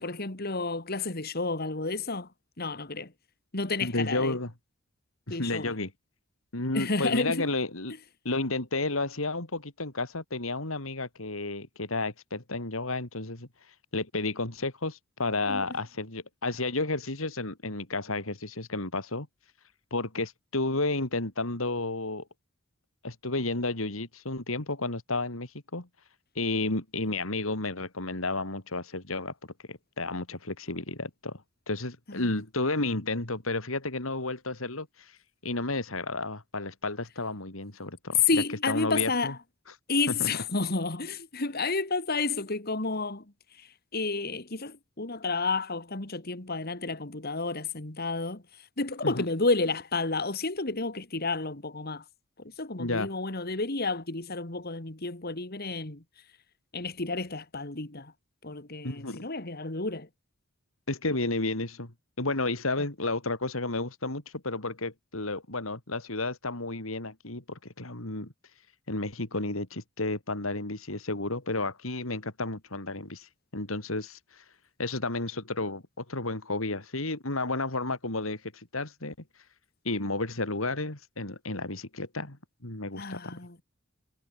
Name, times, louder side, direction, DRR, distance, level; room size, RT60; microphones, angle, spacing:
voice 1, 0.0-2.3 2.6-3.1 3.5-4.4 5.3-5.7 6.7-7.5 15.5-15.7 32.1-32.3 38.3-39.4 39.9-43.3 43.6-48.4 48.8-52.0 52.6-56.0 56.7-58.1 58.4-60.1 83.0-83.6, left 3 dB, 50° left, 2.3 m, -31 dB
voice 2, 3.8-4.5 5.3-5.9 6.5-8.0 8.2-13.5 13.9-19.3 19.9-22.2 23.0-25.9 26.3-29.3 29.7-31.4 31.7-35.2 35.4-38.2 38.7-39.3 40.2-40.3 49.0-49.3 52.8-53.1 58.8-59.3 60.9-61.9 62.2-68.3 68.9-74.4 74.8-79.1 79.8-82.4 82.6-83.3, left 2 dB, 75° left, 3.2 m, -32 dB
head